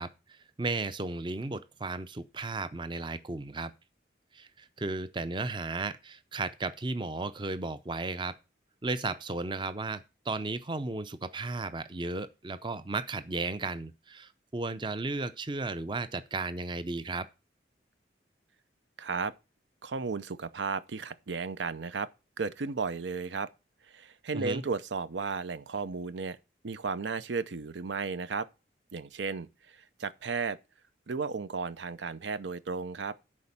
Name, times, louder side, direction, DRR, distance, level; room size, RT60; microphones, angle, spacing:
voice 1, 0.0-3.7 4.3-8.3 8.8-17.3 24.3-24.6, right 3 dB, 25° right, 0.5 m, -34 dB
voice 2, 19.0-19.3 19.8-22.1 22.4-23.5 23.9-26.4 26.6-28.5 28.9-30.6 31.1-33.1, right 4 dB, 85° right, 0.6 m, -34 dB
11.0 x 4.3 x 7.1 m
head